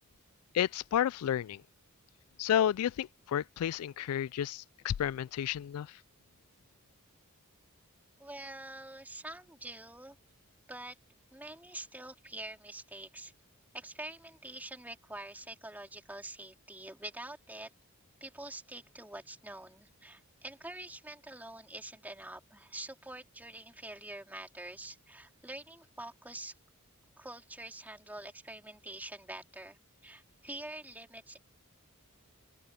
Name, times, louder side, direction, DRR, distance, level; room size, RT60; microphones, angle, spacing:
voice 1, 0.5-1.6 2.4-5.9, left 10 dB, 80° left, 0.3 m, -31 dB
voice 2, 8.2-10.2 10.7-11.0 11.3-13.3 13.7-17.7 18.2-26.5 27.2-29.8 30.0-31.4, right 1 dB, 10° right, 3.9 m, -46 dB
open air
head